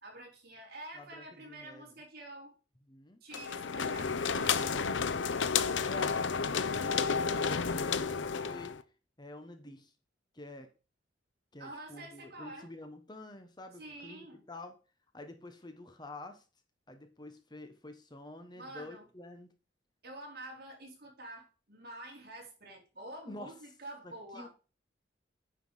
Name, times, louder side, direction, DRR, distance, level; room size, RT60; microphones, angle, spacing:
voice 1, 0.0-2.6 3.2-4.8 11.6-12.7 13.8-14.4 18.6-19.1 20.0-24.5, right 1 dB, 50° right, 0 dB, 3.7 m, -48 dB
voice 2, 0.9-1.9 2.9-3.2 5.6-8.8 9.2-9.9 10.3-10.7 11.5-14.8 15.1-16.4 16.9-19.5 23.3-23.5 24.0-24.5, left 2 dB, 20° left, 7 dB, 1.0 m, -48 dB
sound 1, 3.3-8.8, left 5 dB, 70° left, 0.7 m, -31 dB
9.5 x 5.8 x 4.8 m, 0.33 s
head